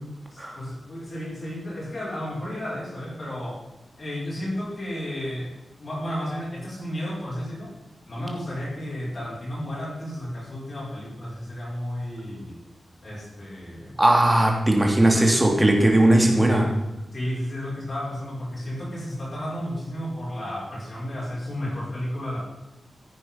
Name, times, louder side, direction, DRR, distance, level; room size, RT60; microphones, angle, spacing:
voice 1, 0.3-3.6 4.0-5.5 5.8-7.7 8.1-12.6 13.0-14.0 15.1-15.3 17.1-22.4, equal, 45° left, -7 dB, 5.8 m, -32 dB
voice 2, 14.0-16.7, right 1 dB, 10° right, 1 dB, 2.8 m, -18 dB
15.0 x 9.2 x 5.8 m, 0.98 s
wide cardioid pair, 150°, 0 cm